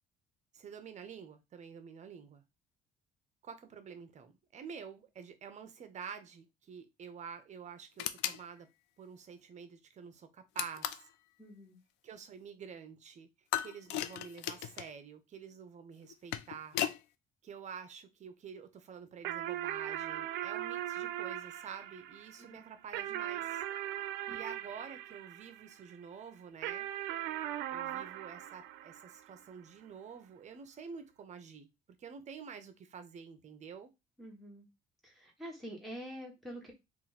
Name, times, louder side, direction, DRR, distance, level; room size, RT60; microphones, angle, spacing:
voice 1, 0.5-2.4 3.4-8.7 9.0-11.1 12.0-13.3 13.6-16.8 17.4-23.6 24.3-26.9 27.7-31.7 32.0-33.9, right 6 dB, 45° right, 0.7 m, -48 dB
sound 1, 8.0-8.4 10.6-11.1 13.5-14.9 16.0-17.0, left 12 dB, 90° left, 0.4 m, -36 dB
voice 2, 11.4-11.8 22.4-22.6 24.3-24.4 34.2-34.6 35.0-36.7, equal, ahead, 1.5 m, -46 dB
sound 2, 19.2-25.9 26.6-29.4, right 12 dB, 90° right, 0.4 m, -39 dB
2.9 x 2.5 x 4.0 m
cardioid pair, 110°, 17 cm